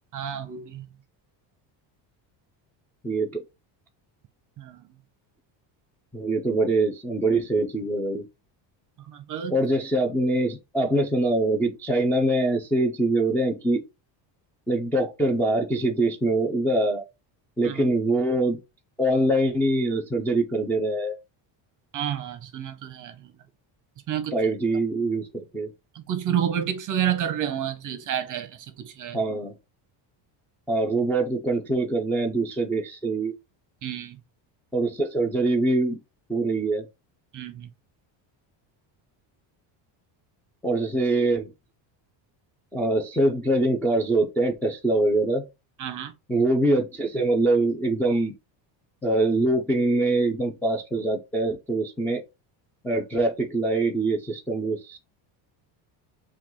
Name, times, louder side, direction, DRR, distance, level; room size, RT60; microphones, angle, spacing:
voice 1, 0.1-0.8 4.6-4.8 9.1-9.6 17.6-17.8 21.9-23.1 24.1-24.3 26.1-28.5 28.8-29.2 33.8-34.2 37.3-37.7 45.8-46.1, right 9 dB, 40° right, 0.8 m, -29 dB
voice 2, 3.0-3.4 6.1-8.3 9.5-13.8 14.7-17.0 17.6-18.6 19.0-21.1 24.3-25.7 29.1-29.6 30.7-33.3 34.7-36.0 36.3-36.9 40.6-41.5 42.7-45.4 46.3-48.4 49.0-52.2 52.8-55.0, right 2 dB, 5° left, 0.4 m, -24 dB
5.7 x 2.4 x 3.0 m
cardioid pair, 145°, 48 cm